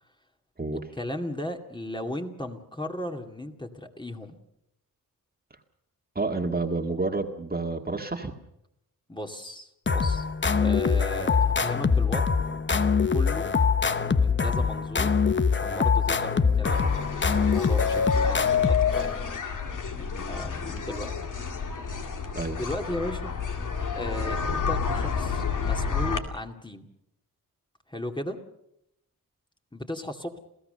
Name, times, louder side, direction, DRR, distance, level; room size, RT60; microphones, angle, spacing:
voice 1, 0.9-4.4 9.1-10.3 10.6-12.3 13.1-13.5 14.2-15.1 15.6-19.2 19.9-21.1 21.5-21.8 22.6-23.3 24.0-26.9 27.9-28.4 29.7-30.4, left 1 dB, 15° left, 3 dB, 2.3 m, -36 dB
voice 2, 6.2-8.3 22.3-22.6, right 3 dB, 25° right, 3 dB, 1.9 m, -29 dB
sound 1, 9.9-19.4, left 5 dB, 30° left, 1.0 m, -23 dB
sound 2, 16.6-26.2, left 5 dB, 60° left, 2.4 m, -31 dB
28.5 x 16.5 x 6.7 m, 0.81 s
wide cardioid pair, 95°, 36 cm